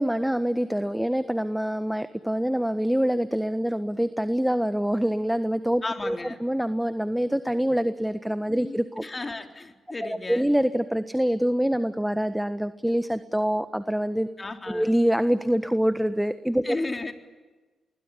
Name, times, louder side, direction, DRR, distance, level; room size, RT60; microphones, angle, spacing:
voice 1, 0.0-9.0 10.0-14.3 14.7-16.8, equal, 5° right, 11 dB, 1.4 m, -25 dB
voice 2, 5.8-6.4 8.6-10.5 14.4-14.9 16.6-17.1, left 2 dB, 30° left, 5 dB, 3.9 m, -34 dB
26.0 x 21.0 x 9.8 m, 1.2 s
hypercardioid pair, 40°, 0 cm